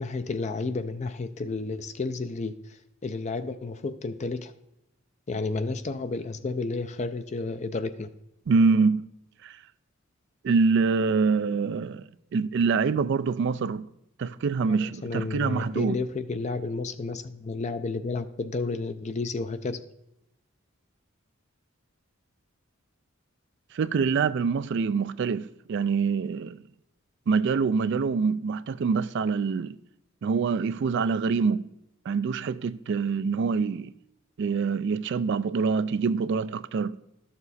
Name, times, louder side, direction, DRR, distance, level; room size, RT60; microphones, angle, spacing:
voice 1, 0.0-4.5 5.3-8.1 14.6-19.9, left 3 dB, 35° left, 0.4 m, -32 dB
voice 2, 8.5-9.0 9.4-9.6 10.4-13.8 14.2-16.0 23.7-26.6 27.3-29.8 30.2-31.7 32.1-33.9 34.4-36.9, right 5 dB, 60° right, 0.4 m, -25 dB
12.0 x 6.9 x 4.1 m
head